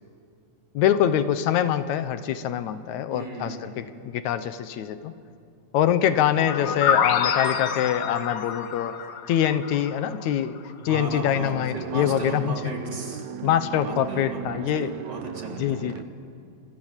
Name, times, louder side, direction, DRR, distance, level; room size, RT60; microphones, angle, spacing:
voice 1, 0.8-5.1 5.7-9.0 9.3-10.6 10.9-12.5 13.4-14.9 15.6-16.0, left 10 dB, 80° left, 12 dB, 2.2 m, -24 dB
voice 2, 3.1-3.8 10.8-13.3 13.8-14.4 14.9-15.9, right 1 dB, 35° right, 0 dB, 4.0 m, -36 dB
sound 1, 6.5-10.2, left 8 dB, 60° left, 2.0 m, -26 dB
sound 2, 11.0-16.0, right 9 dB, 75° right, 2.1 m, -36 dB
29.5 x 26.5 x 7.4 m, 2.5 s
omnidirectional pair, 3.3 m